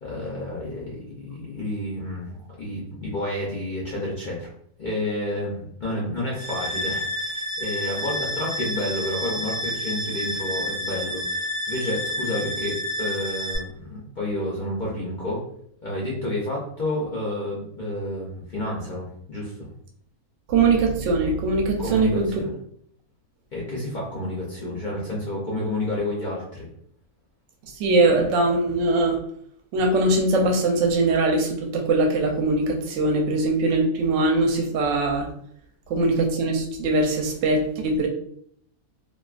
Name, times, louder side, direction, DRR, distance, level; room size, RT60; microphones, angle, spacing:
voice 1, 0.0-4.5 4.8-15.4 15.8-19.7 21.8-22.5 23.5-26.7, left 1 dB, 55° left, -5 dB, 0.5 m, -30 dB
sound 1, 6.3-13.6, left 1 dB, 15° right, 0.8 m, -30 dB
voice 2, 20.5-22.4 27.8-29.2 29.7-35.3 35.9-38.1, right 2 dB, 65° right, 2 dB, 0.8 m, -21 dB
2.4 x 2.3 x 2.3 m, 0.65 s
omnidirectional pair, 1.5 m